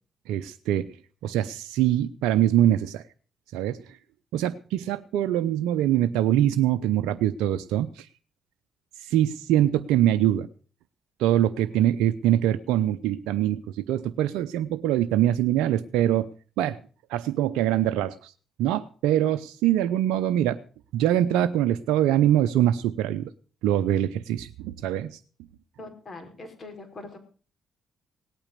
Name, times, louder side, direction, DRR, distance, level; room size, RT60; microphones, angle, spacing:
voice 1, 0.3-0.9 1.2-3.0 3.5-4.0 4.3-8.1 9.0-10.5 11.2-16.3 16.6-16.8 17.1-18.3 18.6-20.6 20.9-23.3 23.6-25.2, right 12 dB, 80° right, 8 dB, 0.6 m, -23 dB
voice 2, 25.8-27.2, left 2 dB, 45° left, 5 dB, 5.1 m, -42 dB
18.0 x 8.9 x 6.7 m, 0.40 s
hypercardioid pair, 50°, 0 cm